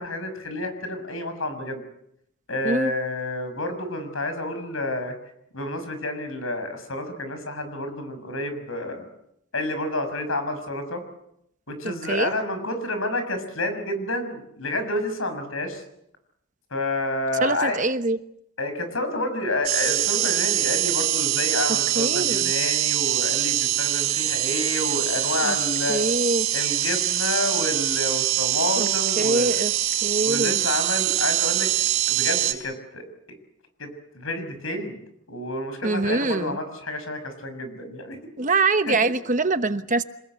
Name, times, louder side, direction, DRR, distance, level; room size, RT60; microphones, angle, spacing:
voice 1, 0.0-1.8 2.5-5.1 5.5-9.0 9.5-11.0 11.7-15.8 16.7-17.8 18.6-26.0 26.5-29.6 30.2-31.7 32.1-33.0 33.8-33.9 34.1-35.0 35.3-38.2 38.9-39.0, left 1 dB, 75° left, 8 dB, 6.4 m, -29 dB
voice 2, 11.8-12.3 17.4-18.2 21.9-22.5 25.4-25.5 25.9-26.5 28.8-28.9 29.2-29.7 30.0-30.6 35.8-36.6 38.4-40.0, right 3 dB, 35° right, 10 dB, 1.1 m, -24 dB
sound 1, 19.6-32.5, right 13 dB, 85° right, 4.5 m, -24 dB
27.0 x 20.5 x 8.2 m, 0.76 s
head